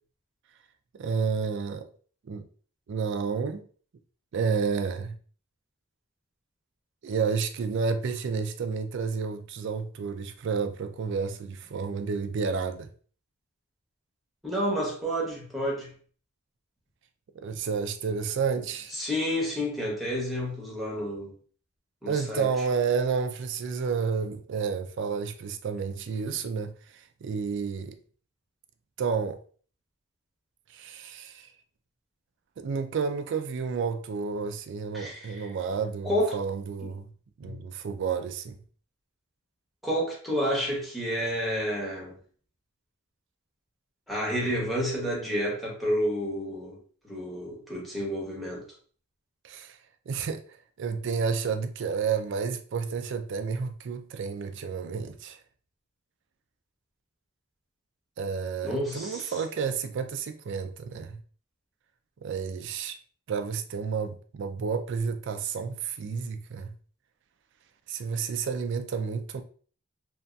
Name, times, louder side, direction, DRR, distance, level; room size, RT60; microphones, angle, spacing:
voice 1, 0.9-1.9 2.2-2.5 2.9-3.7 4.3-5.1 7.0-12.9 17.3-19.0 22.1-28.0 29.0-29.4 30.7-31.5 32.6-37.1 37.4-38.6 49.4-49.8 50.1-55.4 58.2-61.2 62.2-63.0 63.3-66.7 67.9-69.4, right 5 dB, 55° right, 0.3 m, -30 dB
voice 2, 14.4-15.9 18.5-18.6 18.9-21.3 22.0-22.5 34.9-35.5 36.0-36.3 36.8-36.9 37.4-37.6 39.8-42.2 44.1-48.7 58.6-59.3, equal, ahead, 0.9 m, -30 dB
2.9 x 2.7 x 2.3 m
head